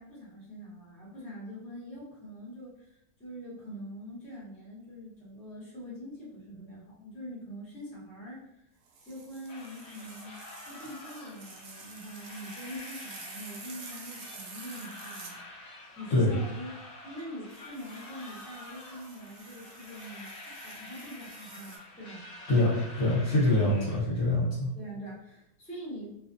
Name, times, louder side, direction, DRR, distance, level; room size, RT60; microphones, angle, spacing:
voice 1, 0.0-8.7 9.0-15.4 15.7-16.7 17.0-22.3 24.7-26.2, equal, 5° left, -7 dB, 0.6 m, -44 dB
sound 1, 8.9-15.3 17.5-21.8, right 4 dB, 85° right, 1.1 m, -49 dB
sound 2, 9.5-24.0, left 1 dB, 70° left, 0.6 m, -48 dB
voice 2, 22.5-24.7, left 2 dB, 55° left, -6 dB, 1.0 m, -25 dB
2.5 x 2.3 x 2.5 m, 0.81 s
omnidirectional pair, 1.6 m